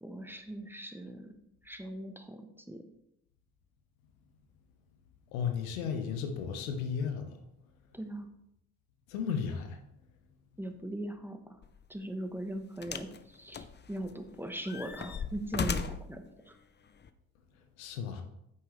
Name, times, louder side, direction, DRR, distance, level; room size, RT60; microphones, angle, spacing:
voice 1, 0.0-1.4 1.6-2.8 7.9-8.3 10.6-11.6 11.9-16.6, right 1 dB, 5° right, 6 dB, 1.1 m, -40 dB
voice 2, 5.3-7.3 9.1-9.8 17.8-18.2, left 7 dB, 85° left, 6 dB, 1.1 m, -34 dB
sound 1, 11.6-11.8 12.8-13.2 13.5-14.2 14.6-16.1 17.0-17.1, left 5 dB, 25° left, 0.6 m, -36 dB
9.2 x 7.0 x 3.3 m, 0.80 s
hypercardioid pair, 60°, 40 cm